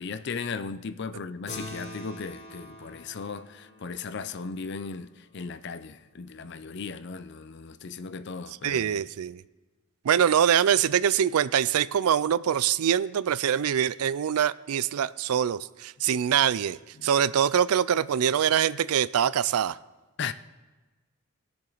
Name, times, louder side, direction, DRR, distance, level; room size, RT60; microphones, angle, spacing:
voice 1, 0.0-9.0 16.1-16.2 17.0-17.1 20.2-20.3, left 5 dB, 50° left, 0.5 m, -37 dB
Keyboard (musical), 1.5-6.3, left 1 dB, 30° left, 3.6 m, -46 dB
voice 2, 8.6-9.4 10.0-19.8, right 9 dB, 85° right, 0.4 m, -24 dB
20.0 x 7.1 x 3.9 m
head